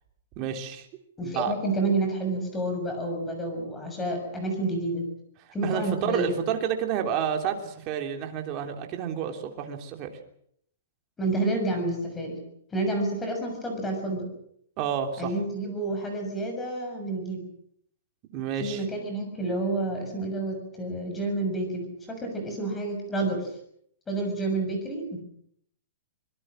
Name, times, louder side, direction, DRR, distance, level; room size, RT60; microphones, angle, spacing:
voice 1, 0.4-0.9 1.2-1.5 5.6-10.1 14.8-15.3 18.3-18.8, right 8 dB, 25° right, 4 dB, 3.2 m, -30 dB
voice 2, 1.2-5.0 5.5-6.3 11.2-12.4 12.7-14.3 15.2-17.4 18.6-23.5 24.1-25.2, right 2 dB, 10° left, 3 dB, 6.6 m, -29 dB
25.5 x 22.5 x 6.4 m, 0.68 s
hypercardioid pair, 170°, 0 cm